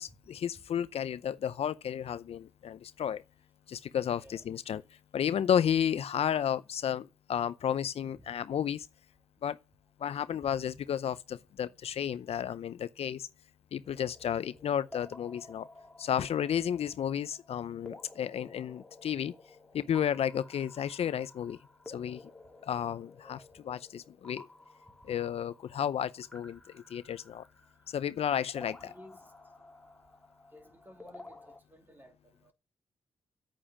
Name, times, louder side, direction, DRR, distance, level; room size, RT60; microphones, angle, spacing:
voice 1, 0.0-3.2 3.7-4.8 5.1-8.9 9.4-9.6 10.0-13.3 13.7-15.7 16.0-19.3 19.7-21.6 21.9-22.2 22.6-24.5 25.1-27.4 27.9-28.9, left 9 dB, 75° left, 0.6 m, -32 dB
sound 1, 13.8-31.6, left 2 dB, 5° left, 2.2 m, -53 dB
voice 2, 28.8-29.3 30.5-32.5, equal, 20° right, 2.9 m, -55 dB
9.1 x 8.8 x 8.7 m
cardioid pair, 95°, 10 cm